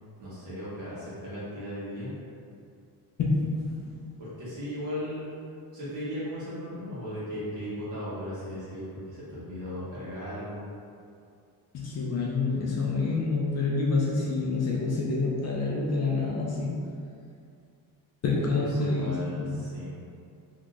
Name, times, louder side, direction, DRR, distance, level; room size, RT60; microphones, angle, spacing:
voice 1, 0.2-2.1 4.2-5.3 5.7-8.8 9.1-10.6 18.3-19.9, equal, 50° right, -10 dB, 1.4 m, -36 dB
voice 2, 3.2-3.8 11.7-16.9 18.2-19.6, left 3 dB, 45° left, -4 dB, 0.5 m, -27 dB
3.4 x 2.8 x 2.4 m, 2.4 s
cardioid pair, 170°, 38 cm